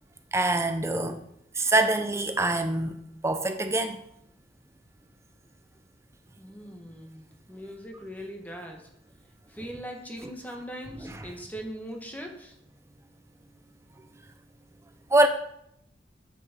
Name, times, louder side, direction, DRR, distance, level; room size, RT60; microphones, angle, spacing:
voice 1, 0.3-1.2 1.6-3.0 3.2-4.0 11.0-11.2 15.1-15.3, right 2 dB, 15° right, 7 dB, 0.7 m, -24 dB
voice 2, 6.4-8.9 9.5-12.5, equal, 10° left, 2 dB, 1.3 m, -40 dB
8.2 x 6.1 x 4.4 m, 0.75 s
head